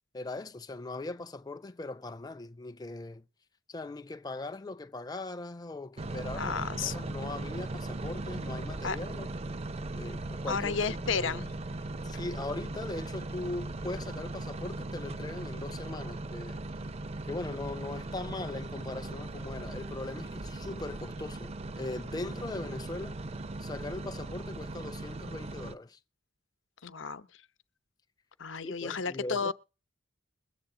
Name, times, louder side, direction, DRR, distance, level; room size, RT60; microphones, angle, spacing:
voice 1, 0.1-3.2 3.7-9.3 9.9-10.8 11.1-11.4 12.0-16.6 17.3-23.2 23.6-26.0 28.6-29.5, left 2 dB, 20° left, 0.5 m, -40 dB
sound 1, 6.0-25.7, right 2 dB, 35° right, 0.5 m, -38 dB
voice 2, 6.3-7.0 8.8-9.0 10.5-11.5 26.8-27.3 28.4-29.5, left 5 dB, 85° left, 0.8 m, -32 dB
21.5 x 7.8 x 3.8 m
head